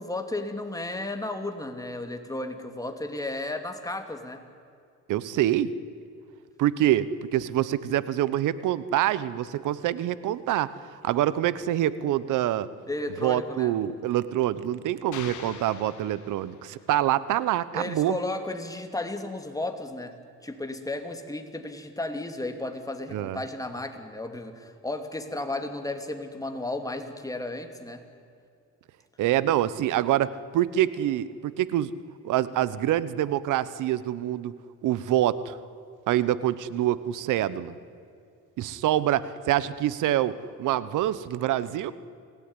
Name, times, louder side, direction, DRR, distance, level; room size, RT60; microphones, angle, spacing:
voice 1, 0.0-4.4 12.9-13.7 17.7-20.1 20.4-28.0, left 2 dB, 10° left, 5 dB, 2.9 m, -34 dB
voice 2, 5.1-5.7 6.6-10.7 11.0-12.7 13.2-18.2 23.1-23.4 29.2-31.9 32.2-35.6 36.1-37.7 38.6-41.9, right 12 dB, 90° right, 16 dB, 1.1 m, -26 dB
sound 1, 15.1-16.8, left 8 dB, 75° left, 2.4 m, -43 dB
29.5 x 17.5 x 9.9 m, 2.5 s
cardioid pair, 90°, 30 cm